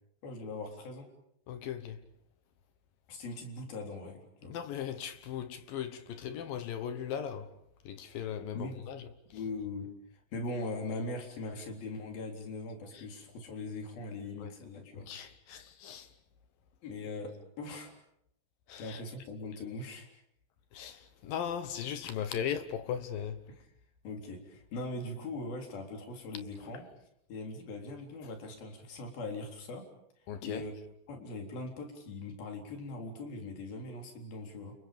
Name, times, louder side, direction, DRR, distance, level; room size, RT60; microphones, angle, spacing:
voice 1, 0.2-1.1 3.1-4.6 8.5-8.7 9.3-15.1 16.8-17.9 18.7-20.2 23.5-23.6 24.0-26.8 27.3-29.9 30.4-30.7 31.1-34.7, left 2 dB, 50° left, 5.3 m, -41 dB
voice 2, 1.5-2.0 4.5-7.6 7.8-9.1 9.3-9.4 12.9-13.0 14.4-14.5 15.0-16.1 18.7-19.0 20.7-23.4 30.3-30.7, left 9 dB, 70° left, 2.3 m, -38 dB
30.0 x 29.5 x 5.3 m
omnidirectional pair, 5.4 m